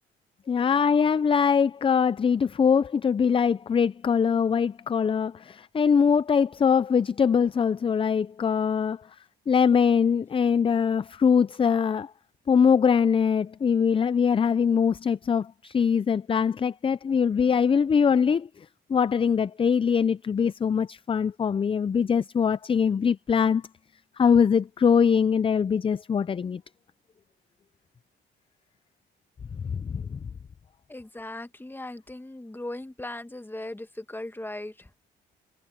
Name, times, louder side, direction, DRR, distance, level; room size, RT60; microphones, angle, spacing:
voice 1, 0.5-9.0 9.5-12.1 12.5-23.6 24.2-26.6 29.7-30.2, left 6 dB, 25° left, 0.4 m, -22 dB
voice 2, 30.9-34.9, left 1 dB, 10° left, 1.6 m, -38 dB
cardioid pair, 90°, 20 cm